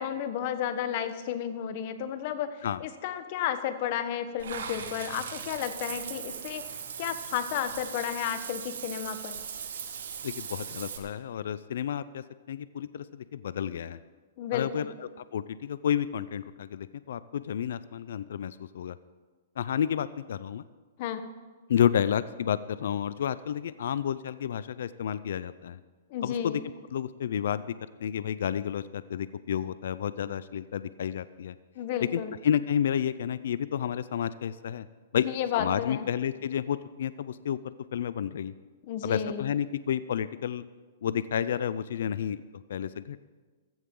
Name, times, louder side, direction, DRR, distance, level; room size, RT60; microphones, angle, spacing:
voice 1, 0.0-2.5 2.8-6.6 7.0-9.4 14.4-14.9 21.0-21.3 26.1-26.6 31.8-32.3 35.2-36.1 38.8-39.5, left 9 dB, 45° left, 11 dB, 1.1 m, -32 dB
Water / Bathtub (filling or washing), 4.4-11.0, right 7 dB, 80° right, 1.6 m, -39 dB
voice 2, 10.2-14.0 14.5-19.0 19.6-20.6 21.7-25.8 26.2-26.6 26.9-27.7 28.0-31.6 32.0-34.9 35.1-35.3 35.5-38.5 39.0-40.6 41.0-42.4 42.7-43.2, left 9 dB, 75° left, 16 dB, 0.5 m, -30 dB
15.0 x 14.5 x 3.8 m, 1.4 s
hypercardioid pair, 145°, 0 cm